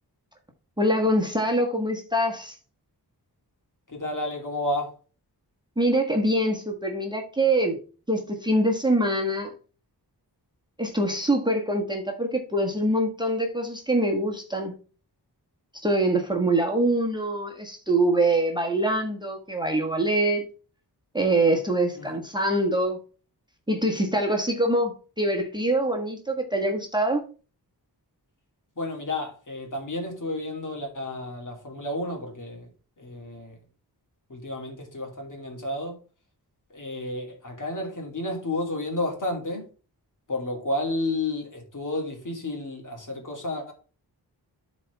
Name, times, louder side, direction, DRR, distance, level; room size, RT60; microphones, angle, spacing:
voice 1, 0.8-2.5 5.8-7.8 8.1-9.5 10.8-14.7 15.8-20.4 21.1-23.0 23.7-27.2, right 1 dB, 10° right, 1.4 m, -24 dB
voice 2, 3.9-4.9 22.0-22.1 28.8-32.7 33.0-33.5 34.3-36.0 36.7-39.6 40.3-43.7, left 2 dB, 50° left, 2.7 m, -31 dB
12.0 x 4.2 x 3.5 m
wide cardioid pair, 115°, 41 cm